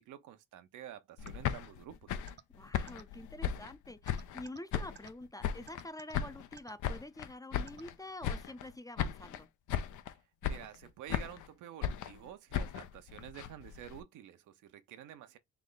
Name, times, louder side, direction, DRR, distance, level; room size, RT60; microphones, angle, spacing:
voice 1, 0.0-2.2 10.4-15.4, right 11 dB, 80° right, 0.8 m, -50 dB
sound 1, 1.2-4.4 4.7-5.9 6.1-7.9 8.2-8.7 9.0-9.4 9.7-10.1 10.4-11.5 11.8-14.0, left 9 dB, 75° left, 0.7 m, -37 dB
sound 2, 1.3-1.4 2.3-2.4 2.9-3.0 4.1-4.6 5.0-5.1 5.7-6.1 6.6-6.7 7.7-7.8, right 8 dB, 35° right, 0.5 m, -52 dB
voice 2, 2.5-9.5, left 1 dB, 10° left, 0.5 m, -47 dB
3.4 x 3.1 x 3.9 m
cardioid pair, 90°, 30 cm